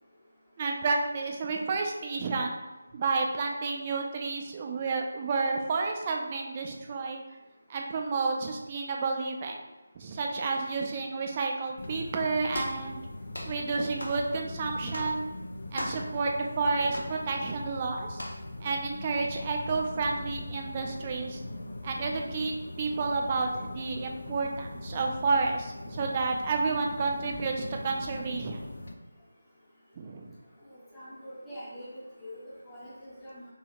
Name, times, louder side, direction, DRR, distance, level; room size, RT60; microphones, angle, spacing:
voice 1, 0.6-2.6 2.9-7.2 7.7-9.6 10.0-13.0 13.4-15.2 15.7-18.2 18.6-21.4 21.8-28.6 30.0-30.4, right 4 dB, 25° right, 2 dB, 0.4 m, -30 dB
sound 1, 11.8-28.9, left 1 dB, 65° left, 0.3 m, -41 dB
sound 2, 12.5-12.8 13.3-13.6 14.0-14.2 14.9-15.1 15.8-16.1 16.9-17.1 18.2-18.4, left 1 dB, 80° left, 0.7 m, -37 dB
voice 2, 30.7-33.5, equal, 5° left, -12 dB, 0.7 m, -44 dB
3.3 x 3.0 x 2.3 m, 1.1 s
figure-of-eight pair, 160°, 0 cm